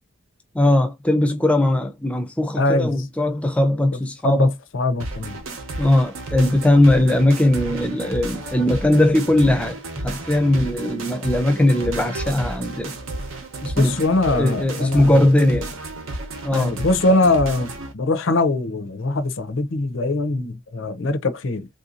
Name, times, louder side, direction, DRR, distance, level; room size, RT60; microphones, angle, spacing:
voice 1, 0.5-4.5 5.8-9.8 10.0-12.9 13.6-15.7 16.4-16.8, left 1 dB, 5° left, 0.5 m, -19 dB
voice 2, 2.6-3.0 4.2-5.3 13.8-15.2 16.5-21.7, left 2 dB, 65° left, 0.6 m, -22 dB
sound 1, 5.0-17.9, right 2 dB, 75° right, 0.8 m, -32 dB
3.4 x 2.7 x 2.4 m
head